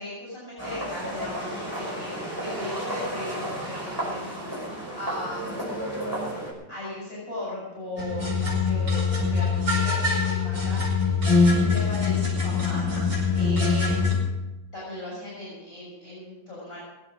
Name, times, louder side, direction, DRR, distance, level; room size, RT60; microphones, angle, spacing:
voice 1, 0.0-5.6 6.7-11.1 11.4-12.9 13.3-14.2 14.7-16.8, left 1 dB, 40° left, -6 dB, 7.3 m, -38 dB
sound 1, 0.6-6.5, equal, 10° right, 5.6 m, -32 dB
sound 2, 8.0-14.2, left 4 dB, 40° right, 6.0 m, -23 dB
21.0 x 8.8 x 6.3 m, 1.0 s
omnidirectional pair, 2.1 m